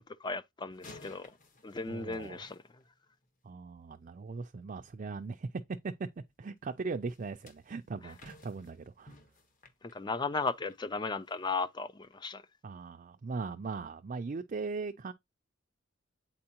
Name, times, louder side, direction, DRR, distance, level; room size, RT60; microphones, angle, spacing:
voice 1, 0.2-1.3 1.6-2.6 9.9-12.4, left 4 dB, 20° left, 0.4 m, -35 dB
sound 1, 0.7-3.3 7.1-10.8 11.3-11.5 12.0-12.1, left 2 dB, 40° left, 1.2 m, -56 dB
voice 2, 1.9-2.4 3.4-5.5 5.8-5.9 6.4-9.1 12.6-15.1, right 4 dB, 40° right, 0.4 m, -39 dB
8.6 x 4.4 x 2.9 m
head